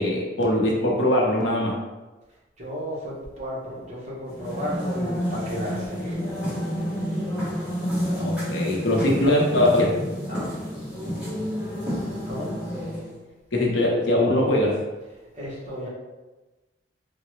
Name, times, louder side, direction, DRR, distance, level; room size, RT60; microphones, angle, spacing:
voice 1, 0.0-1.8 8.0-10.0 13.5-14.8, left 1 dB, 70° left, -2 dB, 0.7 m, -22 dB
voice 2, 2.6-6.3 10.3-10.6 12.3-12.5 15.3-15.9, equal, 35° right, -6 dB, 0.9 m, -33 dB
sound 1, 4.3-13.2, equal, 5° right, 1.3 m, -29 dB
3.8 x 2.1 x 3.0 m, 1.2 s
head